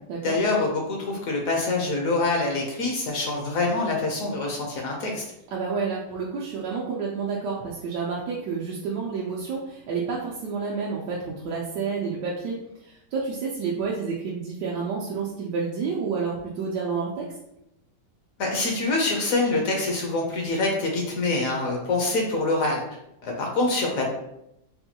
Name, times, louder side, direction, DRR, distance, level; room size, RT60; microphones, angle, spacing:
voice 1, 0.2-5.2 18.4-22.8 23.2-24.1, left 2 dB, 65° left, 0 dB, 0.9 m, -25 dB
voice 2, 5.5-17.3, right 5 dB, 85° right, -4 dB, 1.2 m, -29 dB
4.1 x 2.2 x 2.8 m, 0.83 s
omnidirectional pair, 1.8 m